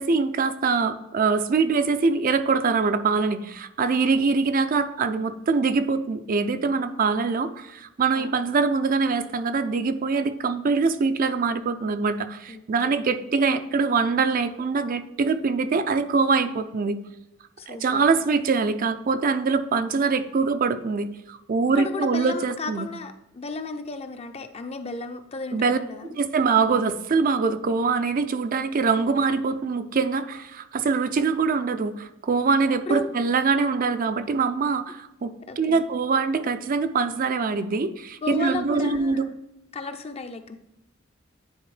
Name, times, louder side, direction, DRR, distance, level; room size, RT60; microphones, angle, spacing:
voice 1, 0.0-17.0 17.7-22.9 25.5-25.8 26.2-39.3, right 4 dB, 45° right, 10 dB, 0.4 m, -23 dB
voice 2, 3.9-4.3 8.1-8.4 12.5-13.0 17.6-18.0 21.8-26.2 32.9-33.1 35.5-35.8 38.2-39.4 39.7-40.6, left 3 dB, 30° left, 8 dB, 0.5 m, -34 dB
9.4 x 4.3 x 3.2 m, 0.89 s
head